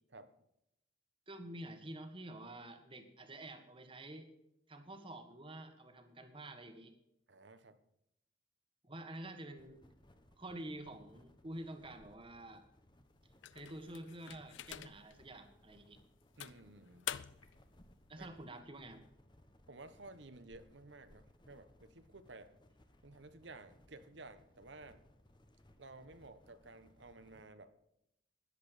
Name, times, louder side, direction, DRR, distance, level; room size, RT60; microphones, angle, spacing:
voice 1, 1.3-4.3 4.7-6.9 8.8-9.8 10.4-12.7 13.5-16.0 18.1-19.0, right 1 dB, 30° right, 7 dB, 1.6 m, -48 dB
voice 2, 7.3-7.8 16.4-17.1 18.2-18.3 19.7-22.5 23.0-25.0 25.8-27.7, right 2 dB, 70° right, 11 dB, 1.2 m, -54 dB
sound 1, 9.6-27.5, left 1 dB, 25° left, 1.2 m, -65 dB
sound 2, 13.4-15.2 15.7-15.8 16.4-17.6, left 11 dB, 80° left, 0.5 m, -46 dB
13.5 x 11.0 x 5.1 m, 0.81 s
head